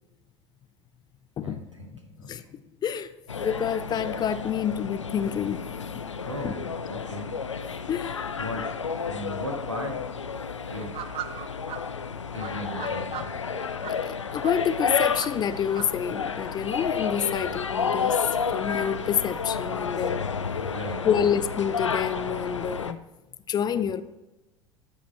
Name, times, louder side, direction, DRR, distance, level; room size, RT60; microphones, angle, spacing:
voice 1, 1.4-2.5 6.2-7.4 8.4-10.0 10.7-11.0 12.3-13.3 17.3-17.5 20.6-21.3, left 1 dB, 90° right, 2 dB, 1.4 m, -37 dB
sound 1, 3.3-22.9, left 6 dB, 85° left, 0.4 m, -31 dB
voice 2, 3.4-5.7 5.9-6.0 6.4-6.5 7.9-8.2 13.9-18.3 18.5-20.2 21.0-23.0 23.5-24.0, left 8 dB, 30° left, 13 dB, 0.5 m, -28 dB
sound 2, 10.7-11.8 12.4-14.0 14.4-15.8, right 11 dB, 40° right, 0.8 m, -38 dB
13.5 x 5.1 x 4.3 m, 1.0 s
figure-of-eight pair, 75°, 15 cm